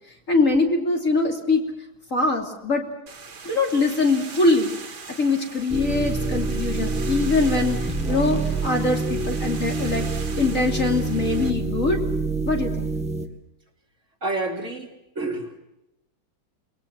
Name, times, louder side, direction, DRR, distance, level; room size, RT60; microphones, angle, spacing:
voice 1, 0.3-1.6 2.1-2.8 3.4-4.7 5.2-10.1 10.4-12.0 12.5-12.9, left 3 dB, 40° left, 2 dB, 3.4 m, -22 dB
sound 1, 3.1-11.5, right 5 dB, 75° right, 3.0 m, -41 dB
sound 2, 5.7-13.3, right 3 dB, 5° right, 1.9 m, -26 dB
voice 2, 14.2-15.5, right 2 dB, 40° right, 1 dB, 3.2 m, -29 dB
29.5 x 21.0 x 5.9 m, 0.86 s
omnidirectional pair, 2.1 m